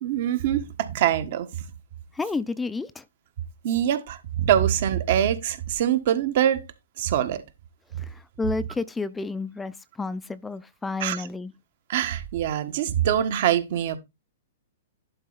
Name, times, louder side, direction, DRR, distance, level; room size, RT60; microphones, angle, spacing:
voice 1, 0.0-1.5 3.6-6.6 7.0-7.4 11.0-11.3 11.9-14.0, right 10 dB, 55° right, 1.3 m, -24 dB
voice 2, 2.1-3.0 8.0-11.5, left 3 dB, 10° left, 0.5 m, -31 dB
11.0 x 4.2 x 4.0 m
hypercardioid pair, 130°, 0 cm